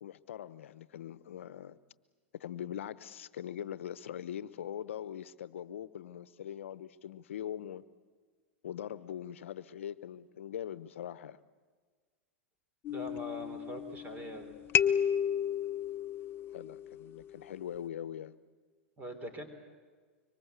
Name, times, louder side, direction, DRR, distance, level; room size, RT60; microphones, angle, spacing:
voice 1, 0.0-1.8 2.3-7.8 8.6-11.4 16.5-18.3, left 10 dB, 80° left, 0.8 m, -42 dB
sound 1, 12.9-14.3 14.7-17.4, left 9 dB, 35° left, 0.7 m, -32 dB
voice 2, 12.9-14.5 19.0-19.5, equal, 25° right, 3.6 m, -42 dB
25.5 x 23.5 x 8.2 m
hypercardioid pair, 105°, 7 cm